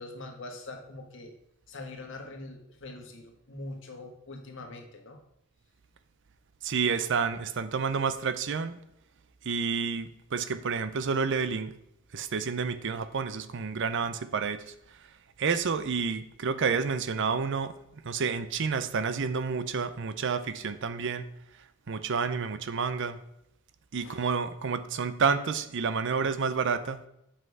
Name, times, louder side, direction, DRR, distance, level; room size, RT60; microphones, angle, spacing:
voice 1, 0.0-1.3 1.7-5.2 24.0-24.2, left 2 dB, 65° left, 3 dB, 1.5 m, -43 dB
voice 2, 6.6-8.7 9.4-11.7 12.1-14.7 15.4-17.7 18.0-21.3 21.9-23.2 23.9-27.0, right 5 dB, 60° right, 12 dB, 0.6 m, -29 dB
7.7 x 5.8 x 4.7 m, 0.79 s
head